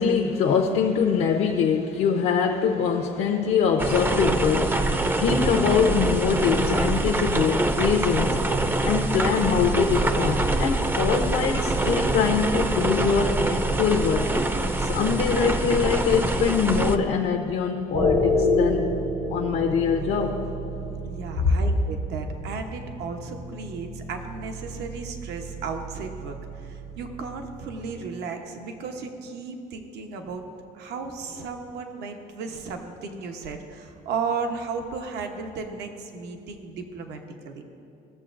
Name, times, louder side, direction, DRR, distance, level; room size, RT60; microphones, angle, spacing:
voice 1, 0.0-8.5 8.8-14.3 14.8-18.9 19.3-20.4 21.4-21.5, left 6 dB, 80° left, 1 dB, 0.7 m, -23 dB
sound 1, 3.8-17.0, right 2 dB, 10° right, 0.4 m, -24 dB
sound 2, 17.9-28.1, left 1 dB, 60° right, 1.2 m, -30 dB
voice 2, 21.0-30.4 30.7-37.6, right 4 dB, 80° right, 4 dB, 0.9 m, -34 dB
16.5 x 6.9 x 2.5 m, 2.6 s
cardioid pair, 110°, 17 cm